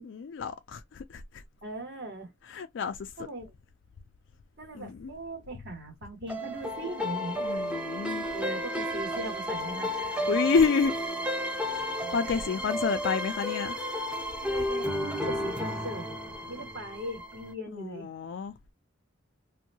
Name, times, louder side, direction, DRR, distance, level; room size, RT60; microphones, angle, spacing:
voice 1, 0.0-1.4 2.5-3.1 4.7-5.1 7.4-8.3 10.3-10.9 11.7-11.9 12.1-13.8 17.7-18.5, left 5 dB, 70° left, 0.4 m, -29 dB
voice 2, 1.6-2.3 3.2-3.5 4.6-7.7 8.3-10.3 12.2-12.5 14.2-16.0 16.5-18.1, right 1 dB, 55° right, 1.4 m, -40 dB
sound 1, 6.3-17.5, equal, 5° right, 0.5 m, -32 dB
2.7 x 2.2 x 2.7 m
head